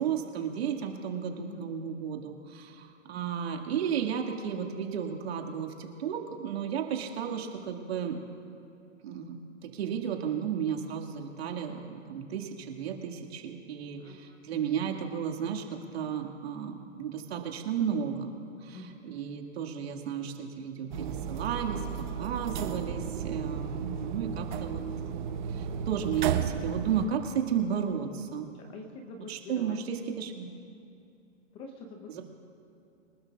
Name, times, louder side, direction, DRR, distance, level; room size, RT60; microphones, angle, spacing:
voice 1, 0.0-8.2 9.0-24.8 25.5-28.5 29.2-30.5 32.1-32.2, right 7 dB, 55° right, 3 dB, 2.0 m, -33 dB
voice 2, 1.3-1.7 14.0-14.4 18.7-19.0 24.2-24.3 28.5-29.8 31.5-32.2, left 3 dB, 15° left, 4 dB, 0.7 m, -46 dB
sound 1, 20.9-27.1, right 8 dB, 40° right, 0.9 m, -34 dB
25.0 x 12.5 x 2.4 m, 2.7 s
hypercardioid pair, 150°, 37 cm